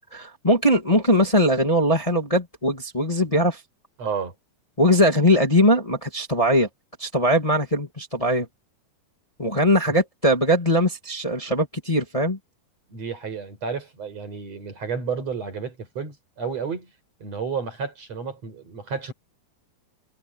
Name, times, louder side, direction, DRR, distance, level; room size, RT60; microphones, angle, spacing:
voice 1, 0.1-3.6 4.8-6.7 7.0-8.5 9.4-12.4, equal, 15° left, 1.4 m, -20 dB
voice 2, 4.0-4.3 9.9-10.0 12.9-16.9 17.2-19.1, right 5 dB, 45° right, 6.3 m, -31 dB
omnidirectional pair, 4.3 m